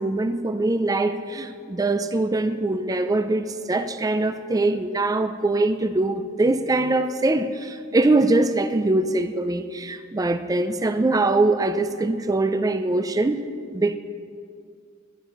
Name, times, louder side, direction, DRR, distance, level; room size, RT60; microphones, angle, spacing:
voice 1, 0.0-13.4 13.7-14.0, right 2 dB, 15° right, 0.3 m, -22 dB
11.5 x 10.5 x 3.9 m
head